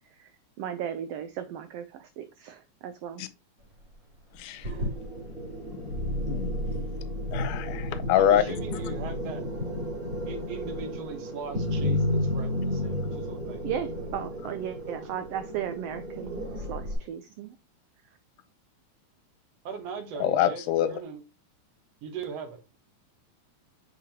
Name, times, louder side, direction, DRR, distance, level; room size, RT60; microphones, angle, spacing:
voice 1, 0.6-3.2 13.6-17.5, right 9 dB, 90° right, 1.3 m, -36 dB
voice 2, 4.4-4.7 5.7-5.8 6.3-6.6 7.3-8.4 20.2-20.9, left 10 dB, 90° left, 2.2 m, -25 dB
sound 1, 4.6-17.0, left 1 dB, 30° right, 3.3 m, -32 dB
voice 3, 8.1-9.5 10.3-14.4 19.7-21.2 22.0-22.6, right 5 dB, 65° right, 1.9 m, -40 dB
7.1 x 4.9 x 2.8 m
omnidirectional pair, 3.5 m